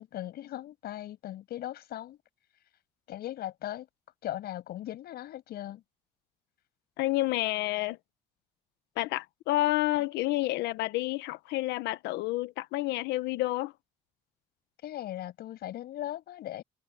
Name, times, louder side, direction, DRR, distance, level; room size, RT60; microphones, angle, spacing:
voice 1, 0.0-2.2 3.1-3.9 4.2-5.8 14.8-16.6, left 13 dB, 70° left, 6.7 m, -38 dB
voice 2, 7.0-8.0 9.0-13.7, left 17 dB, 90° left, 1.2 m, -29 dB
cardioid pair, 110°, 17 cm